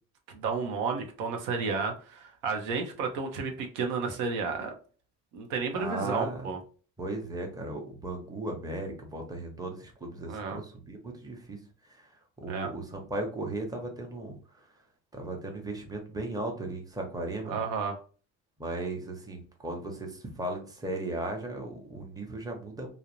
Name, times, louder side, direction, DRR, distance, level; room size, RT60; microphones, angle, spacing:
voice 1, 0.3-4.7 5.3-6.6 10.3-10.6 12.5-12.7 17.5-18.0, right 5 dB, 85° right, 4 dB, 0.6 m, -32 dB
voice 2, 5.7-6.5 7.0-11.6 11.9-12.1 12.4-14.7 15.1-17.6 18.6-22.9, right 2 dB, 10° right, 2 dB, 0.8 m, -36 dB
2.4 x 2.0 x 2.8 m, 0.38 s
cardioid pair, 90°, 32 cm